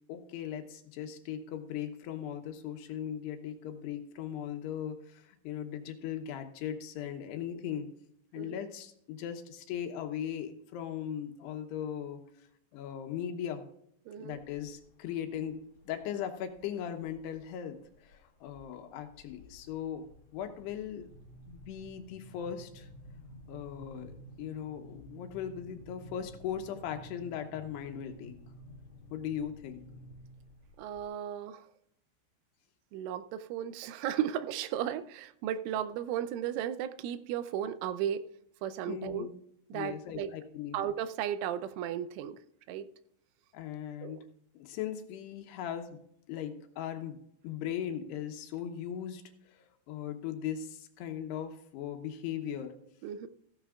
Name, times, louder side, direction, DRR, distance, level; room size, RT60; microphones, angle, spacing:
voice 1, 0.1-7.9 8.3-12.2 12.7-13.7 14.2-15.6 15.9-20.1 20.3-21.1 21.5-22.9 23.5-28.4 29.1-29.8 38.9-39.3 39.7-40.8 43.5-44.2 44.5-46.0 46.3-47.2 47.4-52.7, left 9 dB, 70° left, 6 dB, 2.8 m, -38 dB
voice 2, 14.1-14.4 30.8-31.6 32.9-38.2 38.6-39.3 39.7-40.3 40.7-42.4 42.7-42.9 44.0-44.2 53.0-53.3, right 10 dB, 85° right, 11 dB, 3.1 m, -35 dB
sound 1, 14.4-14.9 15.3-15.9 16.6-17.4 17.8-18.2 18.5-31.1, left 1 dB, 50° left, 1.6 m, -52 dB
15.0 x 11.5 x 2.4 m, 0.72 s
omnidirectional pair, 5.5 m